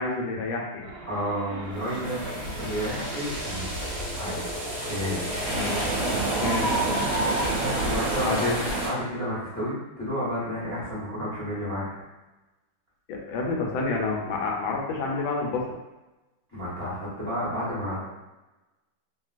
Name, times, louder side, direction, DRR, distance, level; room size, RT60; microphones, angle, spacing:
voice 1, 0.0-0.9 5.5-6.0 6.4-6.9 8.2-8.6 13.1-15.8, left 3 dB, 80° left, -1 dB, 1.4 m, -29 dB
sound 1, 0.8-7.5, right 1 dB, 70° right, 1.1 m, -34 dB
voice 2, 1.1-3.8 4.2-4.4 4.9-5.2 7.5-8.3 8.8-11.9 16.5-18.1, equal, 15° left, -8 dB, 0.6 m, -31 dB
sound 2, 1.7-8.8, left 1 dB, 55° left, 1.1 m, -37 dB
sound 3, 2.0-8.9, right 2 dB, 50° right, 0.9 m, -30 dB
2.9 x 2.8 x 2.4 m, 1.0 s
omnidirectional pair, 2.2 m